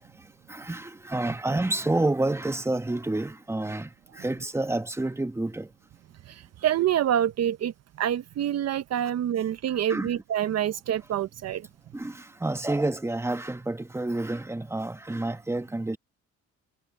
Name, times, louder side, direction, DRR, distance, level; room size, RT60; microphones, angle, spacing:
voice 1, 0.0-5.7 9.7-10.1 11.9-16.0, right 2 dB, 10° right, 1.4 m, -29 dB
voice 2, 6.6-7.7 8.0-11.6, right 10 dB, 55° right, 0.7 m, -26 dB
cardioid pair, 90°, 30 cm